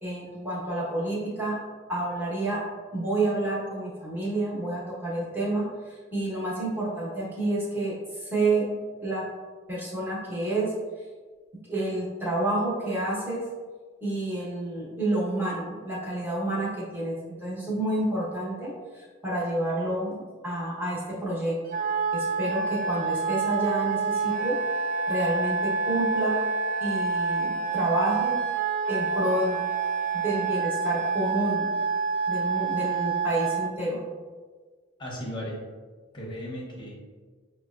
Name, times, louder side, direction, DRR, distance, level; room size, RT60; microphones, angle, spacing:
voice 1, 0.0-1.6 1.9-2.6 2.9-9.2 9.7-10.7 11.7-13.4 14.0-21.5 22.1-24.6 25.1-26.4 26.8-28.4 28.9-29.6 30.1-31.7 32.3-34.0, right 1 dB, 10° right, -7 dB, 1.0 m, -29 dB
Wind instrument woodwind instrument, 21.7-33.7, right 5 dB, 40° right, 0.3 m, -27 dB
voice 2, 35.0-35.6 36.1-37.0, equal, 25° left, -3 dB, 0.8 m, -36 dB
6.1 x 2.1 x 2.4 m, 1.5 s
head